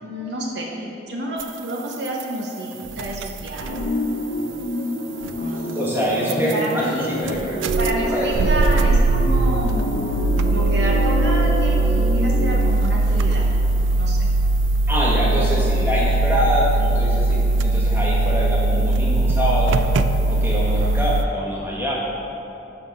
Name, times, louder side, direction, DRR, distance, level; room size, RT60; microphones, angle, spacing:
voice 1, 0.0-2.7 3.0-3.8 5.4-5.8 6.5-7.2 7.8-9.9 10.4-13.5 14.0-14.2, right 1 dB, 60° right, -1 dB, 0.8 m, -29 dB
sound 1, 1.4-1.5 1.9-2.2 2.8-4.1 5.2-5.4 6.3-6.6 6.9-7.0 7.2-21.2, right 2 dB, 90° right, 0.3 m, -20 dB
sound 2, 3.6-12.7, equal, 60° left, 0.8 m, -27 dB
voice 2, 5.7-7.6 8.1-8.5 14.9-19.9 20.3-22.0, equal, 10° right, -6 dB, 1.4 m, -24 dB
7.1 x 5.7 x 5.3 m, 2.9 s
head